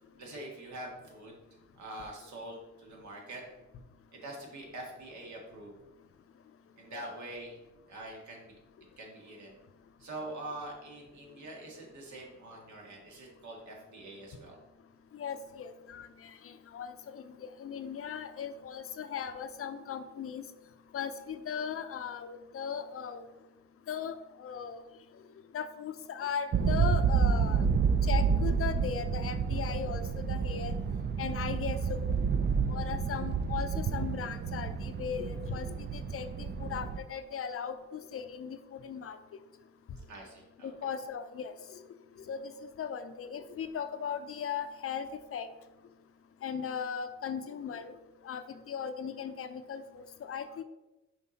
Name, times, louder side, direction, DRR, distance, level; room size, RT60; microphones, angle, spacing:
voice 1, 0.2-3.4 4.2-5.7 6.8-7.6 7.9-8.6 9.0-9.6 10.0-14.6 40.1-40.9 42.2-42.3, right 1 dB, 70° right, 0 dB, 1.9 m, -45 dB
voice 2, 15.1-20.4 20.9-23.2 23.9-24.8 25.5-27.7 28.1-30.8 31.2-32.1 32.7-39.2 40.6-41.8 42.3-45.5 46.4-47.9 48.2-50.6, left 7 dB, 50° left, 10 dB, 0.6 m, -38 dB
sound 1, 26.5-37.0, right 6 dB, 35° right, 0.5 m, -29 dB
5.6 x 4.9 x 4.1 m, 1.0 s
cardioid pair, 90°, 30 cm